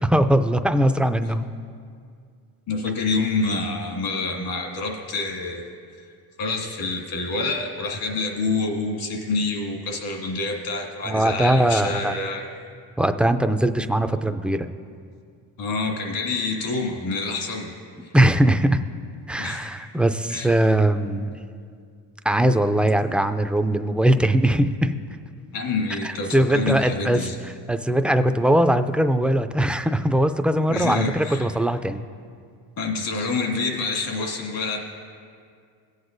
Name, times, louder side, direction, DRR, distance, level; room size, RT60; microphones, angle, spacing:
voice 1, 0.0-1.4 11.1-12.2 13.0-14.7 18.1-18.8 19.3-21.4 22.2-24.9 26.0-27.2 27.7-32.0, right 1 dB, 5° right, 8 dB, 0.3 m, -20 dB
voice 2, 2.7-6.1 6.4-12.5 15.6-17.7 18.0-18.1 19.4-19.7 20.3-20.5 25.5-27.4 30.7-31.5 32.8-34.8, left 3 dB, 75° left, 1 dB, 2.2 m, -27 dB
18.0 x 8.1 x 2.6 m, 2.2 s
supercardioid pair, 75°, 42 cm